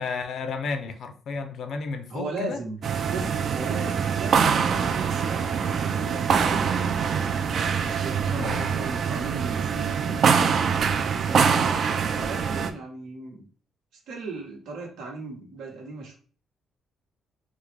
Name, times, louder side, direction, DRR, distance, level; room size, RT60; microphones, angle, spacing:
voice 1, 0.0-2.6 8.3-8.8 10.1-10.2, left 4 dB, 65° left, 0.5 m, -32 dB
voice 2, 2.1-2.8 3.1-6.9 7.5-10.2 12.1-13.5 14.1-16.1, right 3 dB, 85° right, 1.0 m, -37 dB
sound 1, 2.8-12.7, right 6 dB, 55° right, 0.3 m, -24 dB
3.5 x 2.0 x 3.2 m
cardioid pair, 90°, 0 cm